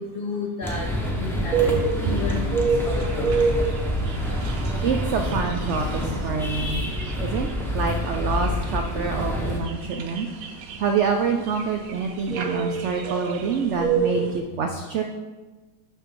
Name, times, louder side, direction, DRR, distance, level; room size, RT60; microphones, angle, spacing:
voice 1, 0.0-3.7, left 4 dB, 85° left, 1 dB, 0.4 m, -33 dB
sound 1, 0.6-9.6, left 1 dB, ahead, 0.6 m, -27 dB
sound 2, 1.5-14.4, right 5 dB, 65° right, 1.0 m, -29 dB
voice 2, 4.8-6.8 7.2-10.3 10.8-15.0, right 5 dB, 85° right, 4 dB, 0.6 m, -26 dB
6.9 x 5.9 x 3.7 m, 1.3 s
omnidirectional pair, 1.8 m